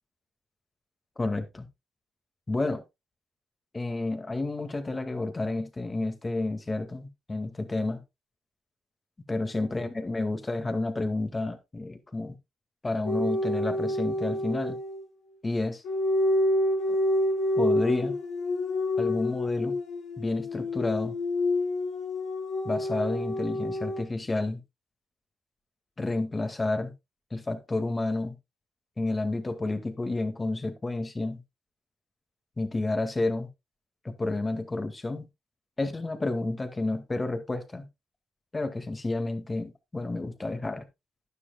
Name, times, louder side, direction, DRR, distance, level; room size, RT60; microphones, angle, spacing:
voice 1, 1.2-1.7 2.5-2.8 3.7-8.0 9.3-12.4 12.8-14.8 15.4-15.8 17.6-18.2 19.0-19.8 20.2-21.2 22.6-24.6 26.0-26.9 27.3-28.4 29.0-31.4 32.6-33.5 34.0-35.3 35.8-37.9 38.5-40.9, left 2 dB, 30° left, 2.0 m, -30 dB
sound 1, 13.0-15.0 15.8-24.0, left 1 dB, 75° left, 2.9 m, -28 dB
12.5 x 9.9 x 2.3 m
hypercardioid pair, 45°, 0 cm